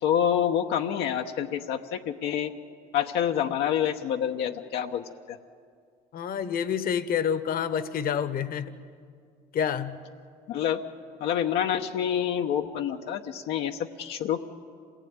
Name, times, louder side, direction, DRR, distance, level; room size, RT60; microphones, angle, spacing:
voice 1, 0.0-2.5 2.9-5.4 10.5-10.8 11.2-14.4, left 9 dB, 85° left, 3 dB, 1.0 m, -27 dB
voice 2, 6.1-8.7 9.5-10.0, left 8 dB, 60° left, 12 dB, 1.2 m, -28 dB
26.5 x 19.0 x 9.5 m, 2.2 s
cardioid pair, 110°, 17 cm